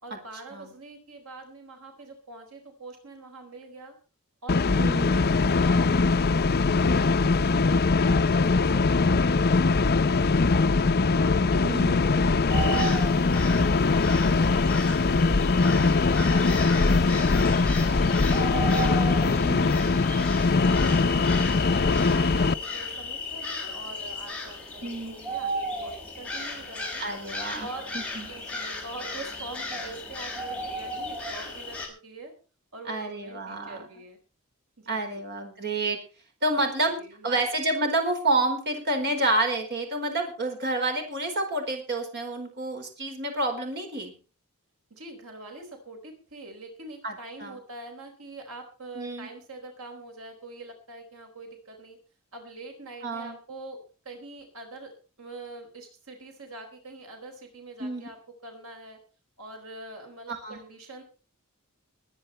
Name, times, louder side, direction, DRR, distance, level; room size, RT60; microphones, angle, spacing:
voice 1, 0.0-3.9 4.4-6.4 6.8-10.7 11.2-13.5 13.8-17.3 17.8-27.0 27.6-27.9 28.3-32.3 32.7-34.2 34.8-35.2 36.6-37.4 44.9-52.0 52.3-58.2 58.4-59.0 59.4-61.0, right 2 dB, 75° right, 3 dB, 4.3 m, -44 dB
sound 1, 4.5-22.5, left 3 dB, 45° left, 0.6 m, -22 dB
voice 2, 4.8-5.2 11.6-12.0 17.9-18.3 19.4-19.7 24.8-25.1 27.0-27.7 27.9-28.3 32.8-33.9 34.9-36.0 36.4-44.1 47.0-47.1 47.4-47.6 48.9-49.3 53.0-53.4 57.8-58.1 60.3-60.6, right 2 dB, 50° right, 4 dB, 4.7 m, -29 dB
sound 2, 12.5-31.9, left 1 dB, 5° left, 5.9 m, -35 dB
22.0 x 9.9 x 4.4 m, 0.35 s
head